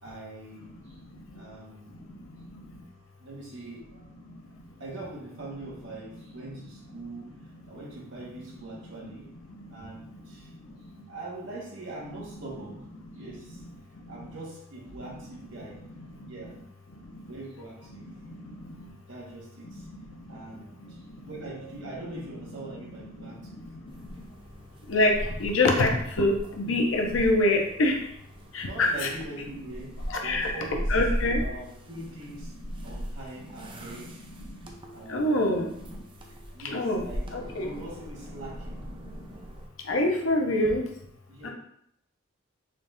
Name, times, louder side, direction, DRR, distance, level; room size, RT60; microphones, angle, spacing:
voice 1, 0.0-1.0 1.3-2.1 3.2-4.0 4.8-7.4 7.6-9.3 9.7-10.5 11.1-12.8 13.1-13.6 14.1-15.8 16.2-16.5 17.3-18.1 19.1-19.9 20.3-23.6 28.6-30.0 30.2-31.0 31.4-32.5 32.8-34.2 34.9-35.4 36.5-37.3 37.6-38.9 41.3-41.5, right 2 dB, 65° right, -4 dB, 1.4 m, -42 dB
sound 1, 23.9-39.7, equal, 25° right, 0.5 m, -38 dB
voice 2, 25.4-28.0 28.5-29.1 30.1-31.4 35.1-35.7 36.7-37.0 37.3-37.7 39.9-40.8 41.4-41.5, left 2 dB, 90° left, 2 dB, 0.7 m, -24 dB
4.0 x 2.7 x 3.4 m, 0.73 s
head